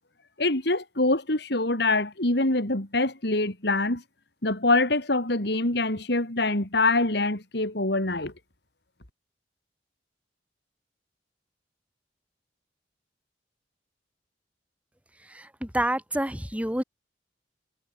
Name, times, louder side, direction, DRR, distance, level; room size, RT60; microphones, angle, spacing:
voice 1, 0.4-4.0 4.4-8.3, left 2 dB, 65° left, 3.9 m, -25 dB
voice 2, 15.3-16.8, right 1 dB, 10° right, 4.4 m, -28 dB
head